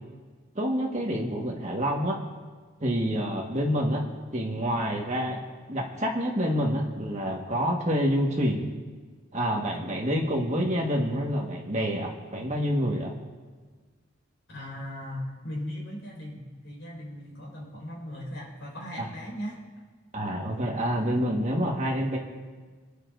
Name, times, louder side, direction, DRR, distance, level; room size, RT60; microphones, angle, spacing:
voice 1, 0.5-2.2 2.8-4.0 4.3-5.4 5.7-8.6 9.3-13.1 19.0-19.1 20.1-22.2, equal, 35° right, 0 dB, 1.5 m, -27 dB
voice 2, 14.5-19.6, equal, 65° left, -3 dB, 4.3 m, -38 dB
27.0 x 10.0 x 2.6 m, 1.5 s
head